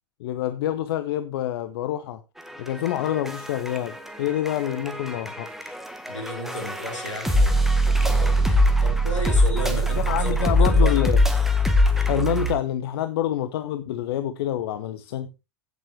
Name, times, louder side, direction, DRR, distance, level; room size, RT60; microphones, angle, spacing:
voice 1, 0.2-2.2 2.6-5.8 10.0-11.2 11.9-15.3, left 12 dB, 55° left, 0.8 m, -27 dB
sound 1, 2.4-12.6, equal, ahead, 1.7 m, -22 dB
voice 2, 6.1-11.0, left 1 dB, 80° left, 3.5 m, -33 dB
15.5 x 7.5 x 3.0 m
figure-of-eight pair, 85°, 15 cm